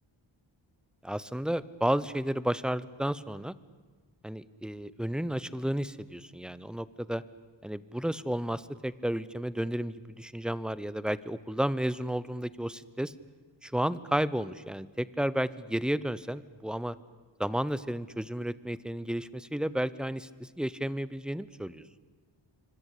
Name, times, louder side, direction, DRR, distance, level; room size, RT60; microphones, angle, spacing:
voice 1, 1.0-3.6 4.2-7.2 7.6-13.1 13.6-17.0 17.4-21.8, equal, ahead, 17 dB, 0.8 m, -32 dB
26.0 x 25.0 x 8.4 m, 1.4 s
wide cardioid pair, 95°, 47 cm